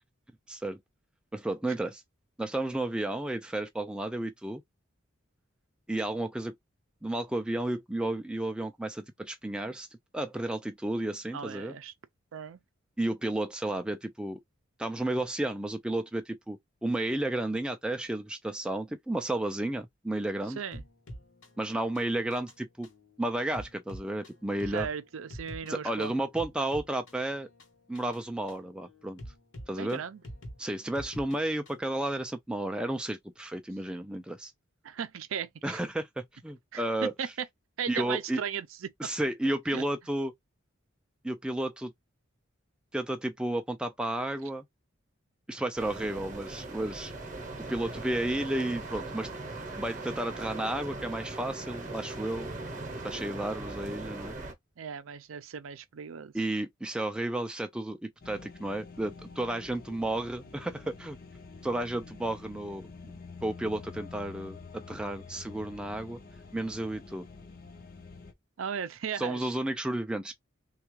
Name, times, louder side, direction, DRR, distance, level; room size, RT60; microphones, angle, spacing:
voice 1, 0.5-0.8 1.3-2.0 2.4-4.6 5.9-6.5 7.0-9.9 10.1-11.8 13.0-14.4 14.8-20.6 21.6-22.9 23.2-24.9 25.7-27.5 27.9-29.2 29.7-30.0 30.6-34.5 35.6-37.1 37.9-38.4 39.0-40.3 41.2-41.9 42.9-44.6 45.5-47.1 47.6-49.3 49.8-52.5 53.0-54.4 56.3-61.2 61.6-63.1 63.4-66.2 66.5-67.3 69.2-70.3, right 1 dB, 5° right, 0.3 m, -32 dB
voice 2, 11.3-11.9 12.3-12.6 20.6-20.8 24.7-26.1 29.7-30.2 34.8-35.8 36.7-37.3 37.8-39.1 39.7-39.8 54.8-56.3 68.6-69.5, right 7 dB, 75° right, 0.5 m, -37 dB
sound 1, 20.7-31.9, equal, 65° left, 1.0 m, -47 dB
sound 2, 45.8-54.5, right 2 dB, 35° right, 0.8 m, -40 dB
sound 3, 58.2-68.3, left 4 dB, 45° left, 0.6 m, -48 dB
3.3 x 2.4 x 3.0 m
head